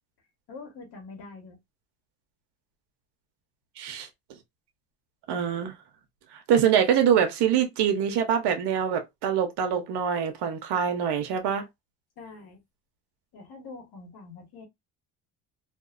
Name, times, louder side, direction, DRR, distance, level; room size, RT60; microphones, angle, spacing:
voice 1, 0.5-1.6 12.2-12.6 13.3-14.7, left 3 dB, 60° left, 1.3 m, -44 dB
voice 2, 3.8-4.1 5.3-5.7 6.3-11.6, right 8 dB, 70° right, 0.9 m, -24 dB
2.6 x 2.3 x 2.4 m
cardioid pair, 85°, 42 cm